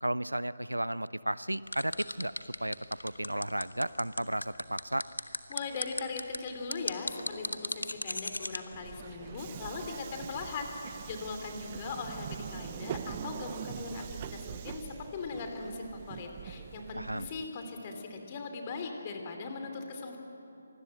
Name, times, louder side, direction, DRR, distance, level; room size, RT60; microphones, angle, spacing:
voice 1, 0.0-2.8 3.0-5.1 17.0-17.3, right 1 dB, 85° right, 18 dB, 0.5 m, -33 dB
sound 1, 1.7-8.6, left 2 dB, 75° left, 1.2 m, -36 dB
voice 2, 5.5-10.7 11.0-20.2, left 4 dB, 30° left, 4 dB, 2.9 m, -39 dB
Subway metro underground, 8.7-17.5, right 9 dB, 25° right, 0.6 m, -43 dB
25.5 x 20.0 x 7.8 m, 3.0 s
figure-of-eight pair, 150°, 0 cm